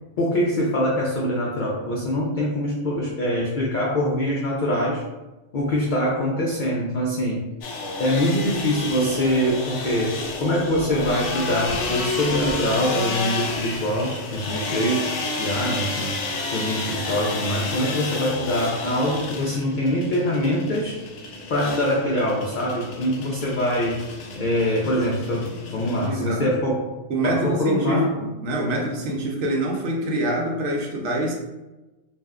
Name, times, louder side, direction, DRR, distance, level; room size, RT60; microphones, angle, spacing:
voice 1, 0.2-5.0 5.5-7.4 8.0-16.2 16.5-21.0 21.5-24.0 24.4-26.8 27.2-28.1 28.7-28.8, equal, 60° left, -3 dB, 0.5 m, -24 dB
sound 1, 7.6-26.1, left 3 dB, 75° left, 0.9 m, -31 dB
voice 2, 26.0-26.5 27.1-31.3, right 1 dB, 70° right, -1 dB, 0.9 m, -25 dB
2.5 x 2.1 x 3.4 m, 1.1 s
omnidirectional pair, 1.3 m